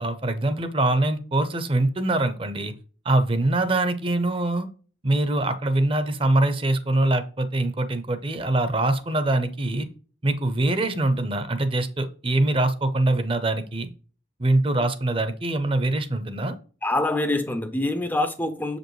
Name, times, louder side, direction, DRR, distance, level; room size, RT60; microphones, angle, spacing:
voice 1, 0.0-2.7 3.0-4.7 5.0-9.9 10.2-13.9 14.4-16.5, right 2 dB, 30° right, 10 dB, 0.7 m, -23 dB
voice 2, 16.8-18.8, left 2 dB, 10° left, 8 dB, 0.5 m, -25 dB
7.2 x 5.1 x 3.1 m, 0.39 s
head